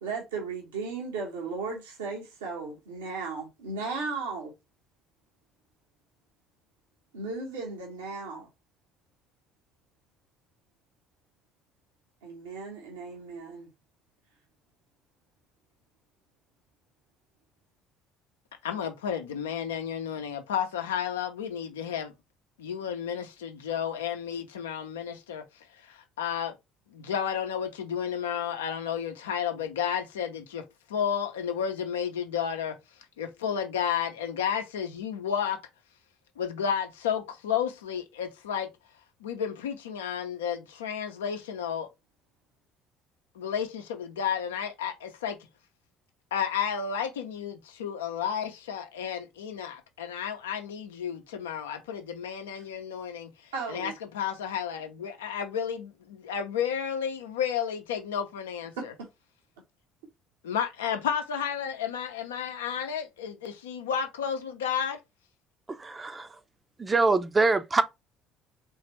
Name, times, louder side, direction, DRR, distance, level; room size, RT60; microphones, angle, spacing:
voice 1, 0.0-4.5 7.1-8.5 12.2-13.7 52.5-52.7 53.5-53.9 58.8-59.1, right 4 dB, 75° right, 1.2 m, -36 dB
voice 2, 18.6-22.1 22.6-25.4 25.9-26.5 26.9-30.6 30.9-32.8 33.2-35.6 36.4-38.7 39.2-41.9 43.4-45.4 46.3-53.3 53.7-58.9 60.4-65.0, left 8 dB, 75° left, 0.6 m, -32 dB
voice 3, 65.7-66.3 66.8-67.8, right 3 dB, 25° right, 0.6 m, -24 dB
3.8 x 3.3 x 3.1 m
figure-of-eight pair, 55°, 0 cm